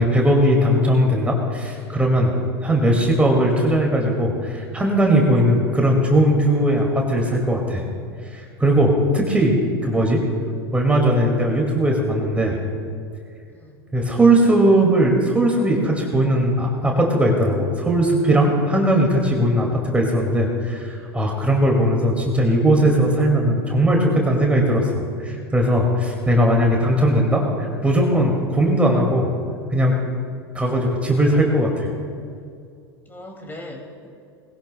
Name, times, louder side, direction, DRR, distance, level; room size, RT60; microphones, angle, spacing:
voice 1, 0.0-2.3 2.6-7.8 8.3-9.6 9.8-10.2 10.7-12.6 13.9-29.3 29.7-29.9 30.5-31.9, right 1 dB, 10° right, 0 dB, 2.1 m, -19 dB
voice 2, 13.5-13.8 19.6-19.7 21.6-21.7 33.1-34.1, left 1 dB, 15° left, 2 dB, 2.3 m, -40 dB
20.5 x 17.0 x 2.2 m, 2.3 s
figure-of-eight pair, 85°, 13 cm